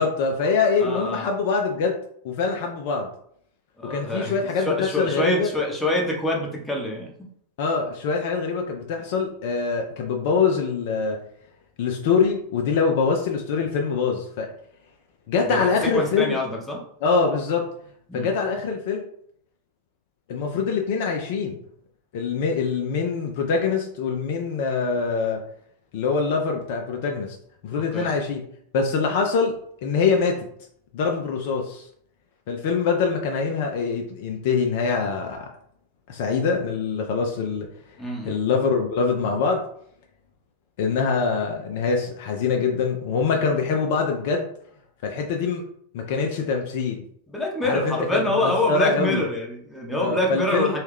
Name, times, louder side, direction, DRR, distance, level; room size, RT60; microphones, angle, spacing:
voice 1, 0.0-1.9 2.2-3.1 3.8-5.5 7.6-11.2 11.8-14.5 15.3-16.4 17.0-17.7 18.1-19.0 20.3-21.6 22.1-25.4 25.9-27.4 27.6-28.4 28.7-29.5 29.8-30.4 30.9-31.8 32.5-35.5 36.1-37.7 38.2-39.6 40.8-44.5 45.0-45.6 45.9-47.0 47.6-49.2 50.0-50.7, left 5 dB, 50° left, 2 dB, 0.4 m, -24 dB
voice 2, 0.8-1.2 3.8-7.1 15.4-15.7 15.9-16.8 18.1-18.3 27.9-28.1 38.0-38.4 47.3-50.8, left 1 dB, 5° left, -2 dB, 0.8 m, -26 dB
3.1 x 2.3 x 3.3 m, 0.66 s
figure-of-eight pair, 90°, 0 cm